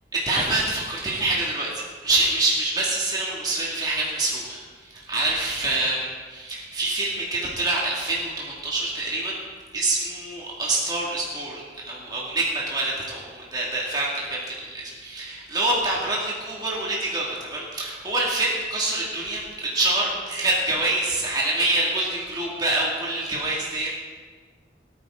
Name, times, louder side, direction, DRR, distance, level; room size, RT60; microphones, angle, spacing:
voice 1, 0.1-9.4 9.7-23.9, right 2 dB, 20° right, -5 dB, 2.2 m, -26 dB
18.5 x 9.0 x 3.8 m, 1.5 s
head